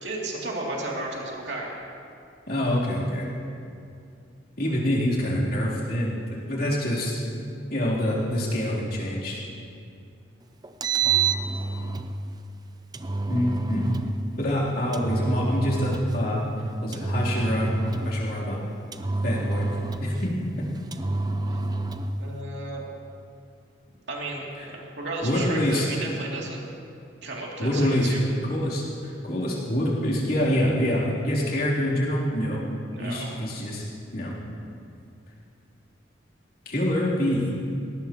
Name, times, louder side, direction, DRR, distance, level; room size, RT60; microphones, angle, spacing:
voice 1, 0.0-1.8 21.5-21.6 22.2-22.8 24.1-26.6 27.2-28.2 32.9-33.3, right 2 dB, 65° right, -3 dB, 2.9 m, -33 dB
voice 2, 2.5-3.3 4.6-6.2 6.5-7.2 7.7-9.4 13.3-13.8 14.4-16.4 16.8-17.7 18.0-18.6 19.2-19.7 20.0-20.5 24.6-24.7 25.2-25.9 27.6-28.1 28.5-32.6 33.0-33.8 34.1-34.3 36.7-37.5, equal, 55° left, -6 dB, 3.5 m, -26 dB
Engine, 10.6-12.1 12.9-14.1 14.9-16.2 16.9-18.2 18.9-20.3 20.9-22.1, right 3 dB, 20° right, 0.5 m, -27 dB
19.5 x 18.0 x 3.1 m, 2.5 s
head